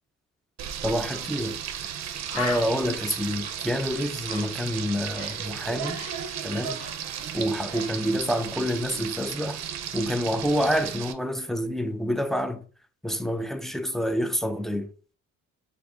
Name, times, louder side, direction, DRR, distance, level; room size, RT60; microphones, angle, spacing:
Frying (food), 0.6-11.1, right 9 dB, 60° right, 0.5 m, -35 dB
voice 1, 0.8-1.6 2.3-6.0 6.4-6.8 7.3-9.6 9.9-12.6 13.0-14.9, equal, ahead, 0.3 m, -27 dB
Bird, 1.4-1.6 1.9-2.0 2.3-5.5 5.7-7.4 7.7-8.0, left 4 dB, 50° left, 1.0 m, -39 dB
3.3 x 2.6 x 3.5 m
cardioid pair, 90°, 30 cm